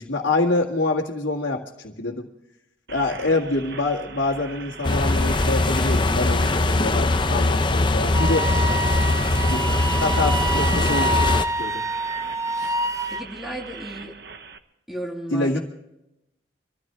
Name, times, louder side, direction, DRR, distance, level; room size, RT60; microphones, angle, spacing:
voice 1, 0.0-2.3 2.9-8.5 9.5-9.7 10.0-11.8 12.6-12.7 15.3-15.6, left 2 dB, 80° left, -4 dB, 2.0 m, -26 dB
sound 1, 2.9-14.6, right 5 dB, 60° right, 1.0 m, -41 dB
sound 2, 4.8-11.4, left 2 dB, 25° left, 0.6 m, -21 dB
Wind instrument woodwind instrument, 8.1-13.3, right 2 dB, 15° right, 0.5 m, -26 dB
voice 2, 13.1-14.1 14.9-15.6, equal, ahead, -1 dB, 2.8 m, -34 dB
25.5 x 14.0 x 3.4 m, 0.85 s
head